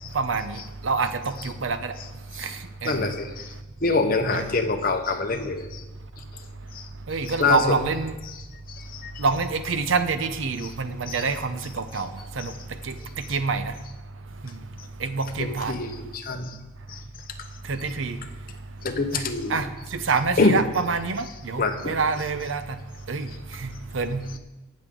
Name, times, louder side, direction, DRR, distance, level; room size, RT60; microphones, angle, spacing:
voice 1, 0.1-0.5 0.8-1.9 2.4-2.5 2.8-3.1 7.1-8.1 9.2-12.1 12.4-12.5 12.9-13.0 13.3-13.7 15.0-15.7 17.7-18.2 19.1-19.2 19.5-19.7 20.1-20.6 20.9-22.8 23.1-23.3 23.6-24.2, right 4 dB, 75° right, 10 dB, 0.7 m, -26 dB
voice 2, 2.8-3.5 3.8-5.8 6.7-6.8 7.2-7.8 8.2-8.4 8.7-9.3 10.6-10.7 11.1-11.2 11.9-12.0 12.4-12.5 15.4-16.6 16.9-17.0 18.8-19.6 20.4-20.6 21.2-22.3, left 3 dB, 45° left, 5 dB, 0.9 m, -26 dB
18.5 x 6.5 x 3.8 m, 1.1 s
head